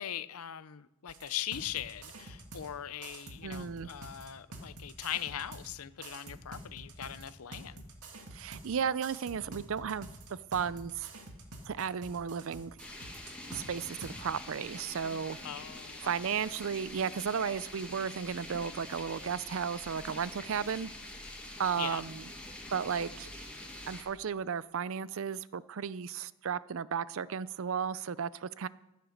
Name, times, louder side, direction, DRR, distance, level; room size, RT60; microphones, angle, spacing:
voice 1, 0.0-7.8 15.4-16.1 21.8-22.0, left 11 dB, 75° left, 15 dB, 0.6 m, -40 dB
sound 1, 1.1-2.7 3.0-5.7 6.0-8.7 9.0-13.6 14.0-14.1, right 2 dB, 85° right, 1.9 m, -47 dB
voice 2, 3.4-3.9 8.3-11.1 11.7-12.8 13.5-15.4 16.0-20.9 21.6-22.2 22.7-23.3 23.9-28.7, right 7 dB, 60° right, 18 dB, 0.4 m, -34 dB
sound 2, 12.8-24.0, left 1 dB, 5° left, 1.9 m, -46 dB
14.5 x 9.1 x 6.5 m, 0.96 s
head